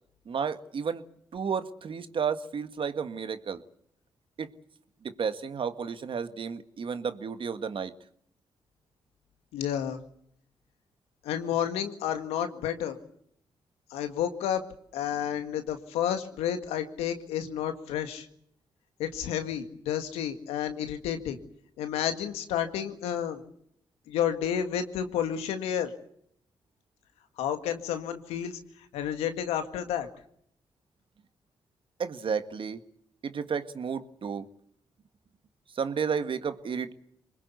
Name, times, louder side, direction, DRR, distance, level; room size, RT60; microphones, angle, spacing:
voice 1, 0.3-1.0 1.3-3.6 4.4-4.5 5.0-7.9 32.0-32.8 33.2-34.5 35.8-36.9, right 6 dB, 60° right, 10 dB, 1.8 m, -32 dB
voice 2, 9.5-10.0 11.2-13.0 13.9-14.6 14.9-18.3 19.0-21.4 21.8-23.4 24.1-25.9 27.4-28.6 28.9-30.1, left 9 dB, 85° left, 8 dB, 1.9 m, -31 dB
24.0 x 21.0 x 8.3 m, 0.68 s
hypercardioid pair, 45°, 10 cm